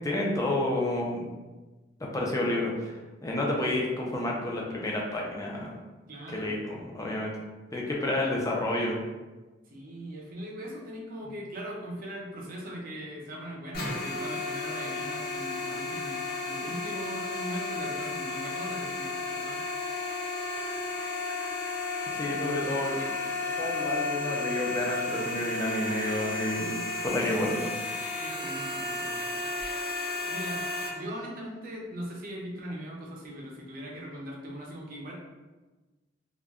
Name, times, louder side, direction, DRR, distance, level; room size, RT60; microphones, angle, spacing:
voice 1, 0.0-1.3 2.1-2.9 3.2-5.7 6.3-7.3 7.7-9.0 16.6-16.7 22.1-23.0 23.6-26.7 27.0-27.7, left 1 dB, 20° left, -2 dB, 0.4 m, -30 dB
voice 2, 6.1-6.6 9.7-19.6 22.3-22.5 28.1-29.4 30.3-30.6 30.9-35.1, equal, 50° right, -2 dB, 0.6 m, -40 dB
sound 1, 13.7-30.9, left 3 dB, 55° left, 0.8 m, -33 dB
2.4 x 2.1 x 3.5 m, 1.2 s
head